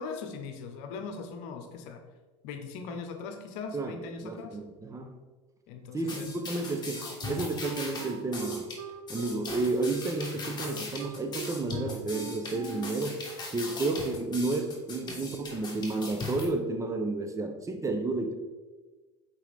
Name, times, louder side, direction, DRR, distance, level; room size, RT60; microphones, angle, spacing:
voice 1, 0.0-2.0 2.4-4.6 5.7-6.3 6.9-7.0, left 4 dB, 65° left, 7 dB, 0.9 m, -40 dB
voice 2, 4.2-5.2 5.9-8.7 9.1-13.2 13.5-18.3, right 2 dB, 20° right, 5 dB, 0.9 m, -31 dB
sound 1, 6.1-16.5, left 3 dB, 25° left, 1.9 m, -39 dB
Wind instrument woodwind instrument, 7.2-13.1, right 7 dB, 80° right, 0.5 m, -42 dB
7.3 x 4.6 x 3.6 m, 1.2 s
hypercardioid pair, 85°, 16 cm